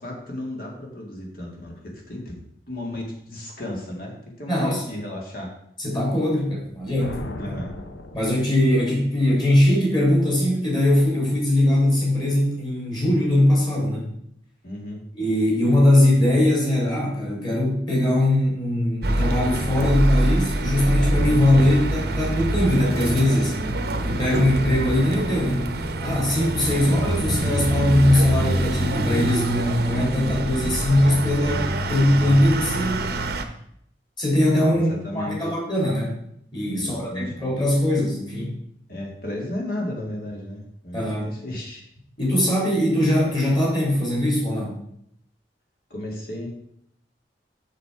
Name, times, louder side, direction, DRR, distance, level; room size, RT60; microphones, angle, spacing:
voice 1, 0.0-5.5 7.3-7.7 14.6-15.0 26.8-26.9 34.7-35.5 36.7-37.3 38.9-41.8 45.9-46.5, left 1 dB, 55° left, 0 dB, 2.2 m, -34 dB
voice 2, 4.5-4.8 5.8-7.6 8.1-14.1 15.2-23.6 24.1-25.7 26.0-33.1 34.2-34.9 35.1-36.1 36.5-38.5 40.9-41.3 42.2-44.7, left 1 dB, 25° left, -4 dB, 3.5 m, -21 dB
Thunder, 6.7-8.9, left 2 dB, 85° left, 0.8 m, -38 dB
sound 1, 19.0-33.4, right 1 dB, 60° right, 0.8 m, -25 dB
6.6 x 6.5 x 4.9 m, 0.71 s
head